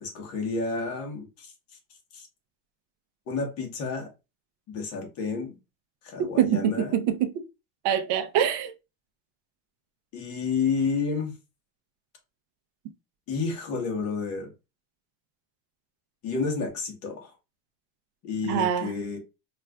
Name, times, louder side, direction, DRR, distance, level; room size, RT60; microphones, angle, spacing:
voice 1, 0.0-1.5 2.1-2.3 3.3-4.1 4.7-5.6 6.0-6.9 10.1-11.3 13.3-14.5 16.2-17.3 18.2-19.2, left 4 dB, 40° left, 1.0 m, -30 dB
voice 2, 6.2-7.4 7.8-8.7 18.4-18.9, right 10 dB, 55° right, 0.5 m, -25 dB
4.2 x 2.4 x 2.2 m
cardioid pair, 160°, 38 cm